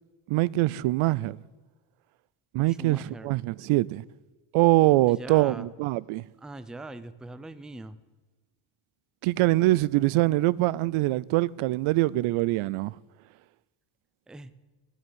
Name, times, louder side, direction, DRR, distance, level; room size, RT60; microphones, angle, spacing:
voice 1, 0.3-1.4 2.5-4.0 4.5-6.3 9.2-13.0, right 18 dB, 80° right, 0.6 m, -23 dB
voice 2, 2.7-3.3 5.1-5.7 6.4-8.0 14.3-14.5, right 2 dB, ahead, 0.4 m, -41 dB
13.0 x 9.2 x 8.0 m
cardioid pair, 140°, 49 cm